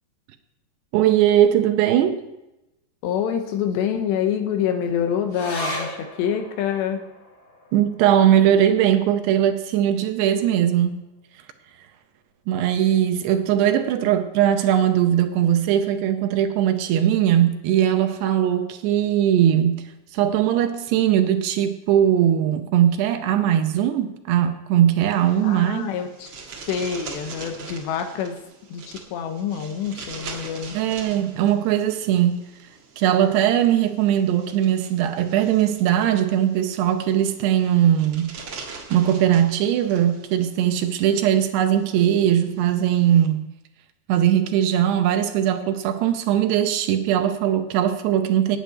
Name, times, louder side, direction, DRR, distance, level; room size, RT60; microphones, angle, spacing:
voice 1, 0.9-2.2 7.7-11.0 12.5-19.9 20.1-25.9 30.8-32.4 33.0-38.3 38.9-43.4 44.1-48.6, right 10 dB, 75° right, 7 dB, 2.7 m, -20 dB
voice 2, 3.0-7.0 25.4-26.3 26.7-28.4 28.7-30.8, left 8 dB, 80° left, 6 dB, 3.2 m, -26 dB
sound 1, 5.3-12.1 12.4-12.5 12.8-13.5 14.1-14.2, equal, 35° left, 3.2 m, -39 dB
sound 2, 25.1-43.3, right 4 dB, 55° right, 1.4 m, -43 dB
9.0 x 8.7 x 9.2 m, 0.95 s
omnidirectional pair, 5.2 m